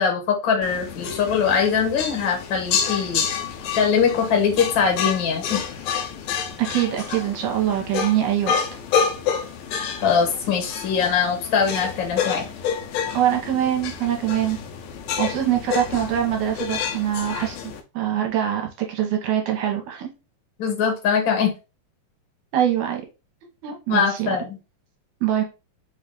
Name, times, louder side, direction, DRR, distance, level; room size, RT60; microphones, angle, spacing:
voice 1, 0.0-3.3 3.8-5.6 10.0-12.5 20.6-21.5 23.9-24.6, left 6 dB, 65° left, 1.2 m, -22 dB
sound 1, 0.6-17.8, left 7 dB, 90° left, 2.2 m, -29 dB
voice 2, 6.6-8.8 13.1-14.6 15.2-17.6 17.9-20.1 22.5-23.1 23.6-24.3 25.2-25.4, right 11 dB, 75° right, 2.1 m, -23 dB
5.1 x 2.3 x 3.7 m
omnidirectional pair, 3.7 m